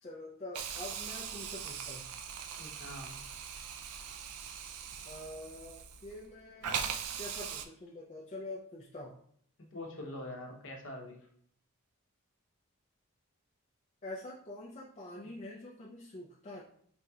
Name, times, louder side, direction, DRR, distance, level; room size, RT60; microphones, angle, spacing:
voice 1, 0.0-2.1 5.0-6.9 7.2-9.2 14.0-16.6, left 1 dB, 30° left, -4 dB, 0.4 m, -45 dB
Hiss, 0.5-6.3 6.6-7.6, right 7 dB, 85° right, 0.4 m, -40 dB
voice 2, 2.6-3.2 4.1-4.2 9.7-11.2, left 1 dB, 55° left, 1 dB, 0.8 m, -44 dB
5.1 x 2.7 x 2.3 m, 0.62 s
head